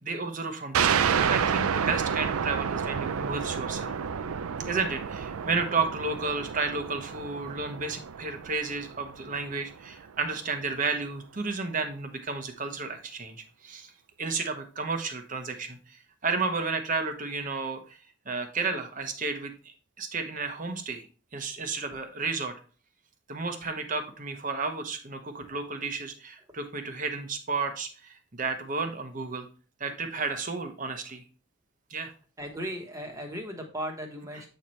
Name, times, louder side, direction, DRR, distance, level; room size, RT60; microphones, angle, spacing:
voice 1, 0.0-4.0 4.6-13.9 14.2-15.8 16.2-17.8 18.3-21.0 21.3-22.5 23.3-29.5 29.8-31.2 31.9-32.1, right 4 dB, 40° right, 6 dB, 0.9 m, -32 dB
sound 1, 0.7-10.0, right 7 dB, 90° right, 0.4 m, -30 dB
voice 2, 32.4-34.5, equal, 15° right, 2 dB, 1.2 m, -36 dB
8.2 x 4.3 x 3.1 m, 0.37 s
head